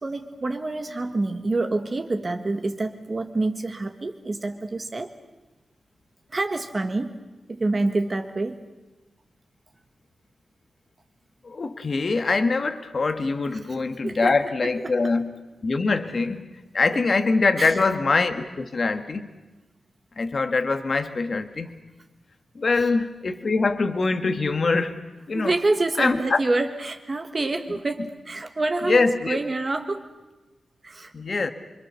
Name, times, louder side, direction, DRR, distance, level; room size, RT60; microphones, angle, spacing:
voice 1, 0.0-5.1 6.3-7.1 7.5-8.6 13.6-13.8 14.0-14.3 14.6-14.7 17.6-17.7 25.3-30.1 30.8-31.4, right 2 dB, 30° right, 6 dB, 1.4 m, -27 dB
voice 2, 11.4-15.3 15.6-16.4 16.7-19.3 20.2-21.7 22.5-25.0 25.3-25.5 26.0-26.4 28.8-29.4 31.1-31.5, left 3 dB, 40° left, 9 dB, 1.5 m, -23 dB
26.0 x 25.5 x 6.9 m, 1.1 s
wide cardioid pair, 180°, 0 cm